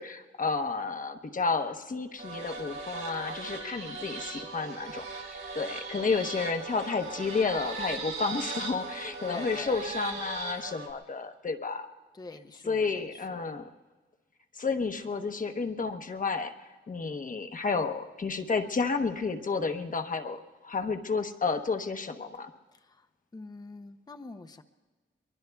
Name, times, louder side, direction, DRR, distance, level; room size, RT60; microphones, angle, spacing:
voice 1, 0.0-5.1 5.5-11.9 12.7-13.7 14.5-22.5, left 4 dB, 40° left, 6 dB, 1.0 m, -31 dB
sound 1, 2.2-10.9, right 4 dB, 80° right, 3.1 m, -38 dB
voice 2, 9.3-9.8 12.1-13.4 22.7-23.1 23.3-24.6, left 3 dB, 20° left, 8 dB, 0.6 m, -45 dB
23.0 x 23.0 x 2.3 m, 1.3 s
wide cardioid pair, 105°, 20 cm